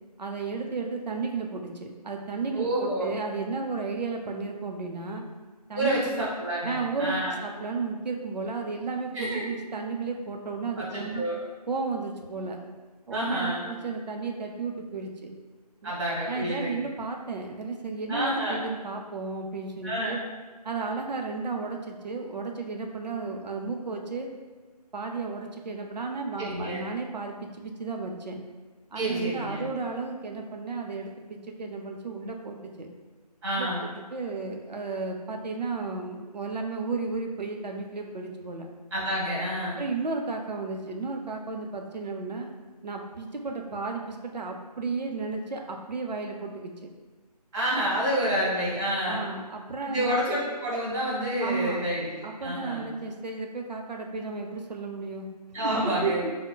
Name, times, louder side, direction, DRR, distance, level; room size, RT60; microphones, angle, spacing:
voice 1, 0.2-5.2 5.7-6.3 6.6-11.2 11.7-12.6 13.1-15.3 15.8-15.9 16.3-20.2 20.6-24.3 24.9-28.4 28.9-32.9 33.6-38.7 39.8-42.5 42.8-46.9 49.1-50.2 51.4-51.8 52.2-55.3 55.6-56.3, right 4 dB, 85° right, 2 dB, 0.6 m, -33 dB
voice 2, 2.5-3.1 5.7-7.4 9.1-9.5 10.8-11.4 13.1-13.6 15.8-16.8 18.1-18.6 19.8-20.2 26.4-26.8 28.9-29.7 33.4-33.9 38.9-39.8 47.5-49.3 49.8-52.9 55.5-56.2, equal, 30° right, -6 dB, 1.5 m, -29 dB
5.5 x 2.1 x 2.3 m, 1.3 s
figure-of-eight pair, 165°, 21 cm